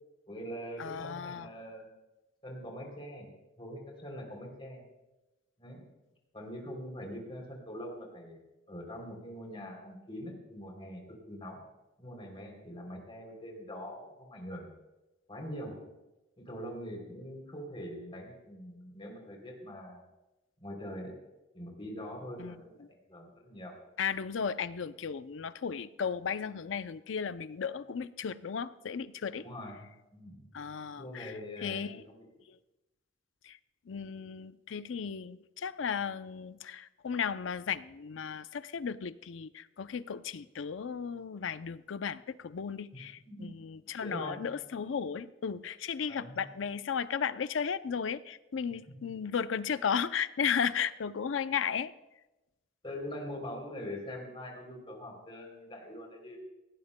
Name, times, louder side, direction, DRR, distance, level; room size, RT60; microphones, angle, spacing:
voice 1, 0.3-1.9 2.4-3.3 3.6-4.8 5.6-5.8 6.3-8.4 8.7-11.6 12.0-14.7 15.3-15.7 16.4-20.0 20.6-21.1 21.5-23.8 29.3-29.8 30.1-30.5 31.0-32.3 43.2-43.5 44.0-44.4 46.1-46.4 52.8-56.4, equal, 30° left, 1 dB, 3.1 m, -43 dB
voice 2, 0.8-1.5 22.4-22.9 24.0-29.4 30.5-32.0 33.4-33.6 33.9-51.9, left 7 dB, 75° left, 14 dB, 0.5 m, -35 dB
17.5 x 17.5 x 2.2 m, 1.0 s
head